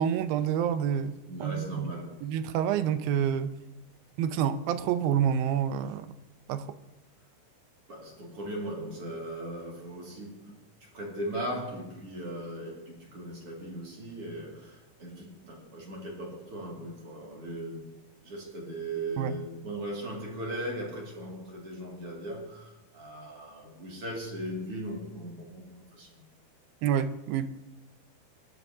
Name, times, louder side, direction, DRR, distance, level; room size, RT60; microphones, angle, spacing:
voice 1, 0.0-1.1 1.4-1.9 2.2-3.6 4.2-6.1 6.5-6.7 19.2-19.4 26.8-27.5, right 9 dB, 80° right, 11 dB, 2.2 m, -28 dB
voice 2, 1.3-2.2 7.9-17.9 18.2-26.3, right 1 dB, 40° right, -2 dB, 2.6 m, -38 dB
20.5 x 13.0 x 2.7 m, 1.0 s
omnidirectional pair, 4.6 m